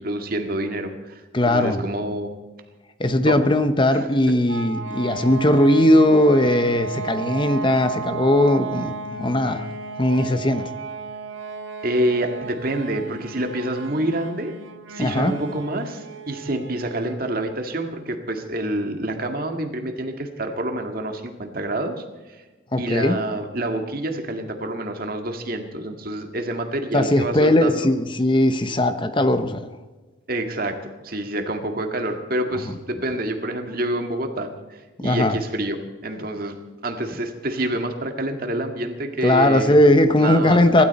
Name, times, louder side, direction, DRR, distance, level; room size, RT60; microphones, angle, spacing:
voice 1, 0.0-2.3 3.3-3.4 3.9-4.3 11.8-14.5 14.9-22.4 22.7-27.9 30.3-35.8 36.0-36.6 36.8-39.8 40.2-40.6, right 1 dB, 45° right, 5 dB, 1.9 m, -27 dB
voice 2, 1.3-1.8 3.0-9.7 10.0-10.7 15.0-15.3 22.7-23.2 26.9-29.7 35.0-35.4 39.2-40.8, left 1 dB, 25° left, 9 dB, 0.8 m, -18 dB
sound 1, 4.5-17.3, right 4 dB, 75° right, 1.8 m, -34 dB
24.5 x 13.0 x 4.3 m, 1.2 s
head